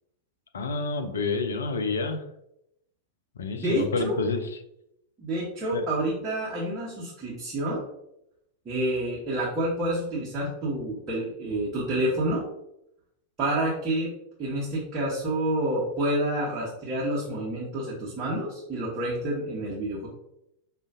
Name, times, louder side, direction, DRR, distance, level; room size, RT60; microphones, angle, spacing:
voice 1, 0.5-2.2 3.4-4.5 5.7-5.9, left 4 dB, 65° left, 6 dB, 0.4 m, -28 dB
voice 2, 3.5-4.2 5.2-7.8 8.6-12.4 13.4-14.1 14.4-20.1, right 1 dB, 25° right, -7 dB, 1.0 m, -28 dB
4.9 x 2.4 x 2.5 m, 0.81 s
figure-of-eight pair, 90°, 0 cm